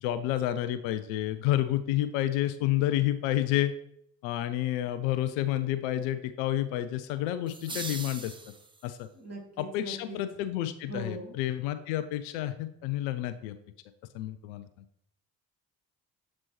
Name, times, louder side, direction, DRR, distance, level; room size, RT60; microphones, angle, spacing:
voice 1, 0.0-3.7 4.2-8.3 8.8-9.1 9.6-13.6 14.1-14.7, left 13 dB, 70° left, 12 dB, 0.5 m, -30 dB
sound 1, 7.5-9.0, right 3 dB, 10° right, 0.5 m, -40 dB
voice 2, 9.1-10.2 10.9-11.4, right 1 dB, 30° right, -2 dB, 2.6 m, -40 dB
7.4 x 4.2 x 3.1 m, 0.70 s
figure-of-eight pair, 40°, 48 cm